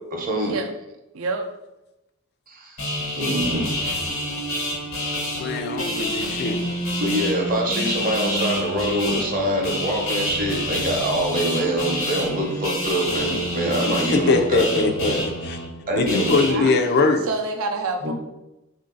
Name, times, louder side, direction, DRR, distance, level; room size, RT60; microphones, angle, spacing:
voice 1, 0.1-0.5 2.5-4.0 5.3-5.5 7.0-15.2 15.9-16.7 18.0-18.1, right 1 dB, 40° right, 1 dB, 0.7 m, -25 dB
voice 2, 1.1-1.5 16.4-16.7 17.3-18.1, right 3 dB, 85° right, 5 dB, 0.5 m, -27 dB
sound 1, 2.8-16.5, left 1 dB, 85° left, 1.1 m, -27 dB
voice 3, 5.4-6.6 14.1-15.6 16.0-17.2, left 3 dB, 50° left, 7 dB, 0.4 m, -22 dB
3.1 x 2.5 x 3.8 m, 0.95 s
head